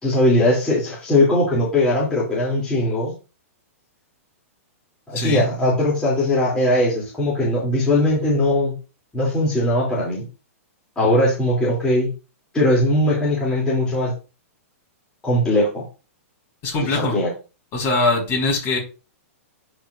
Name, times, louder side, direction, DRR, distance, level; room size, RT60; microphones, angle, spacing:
voice 1, 0.0-3.1 5.1-8.7 9.1-10.2 10.9-12.1 12.5-14.1 15.2-15.8 16.8-17.3, left 1 dB, 10° left, 3.2 m, -19 dB
voice 2, 5.1-5.5 16.6-17.2 17.7-18.8, left 2 dB, 30° left, 4.7 m, -22 dB
12.0 x 5.1 x 2.7 m
hypercardioid pair, 140°, 8 cm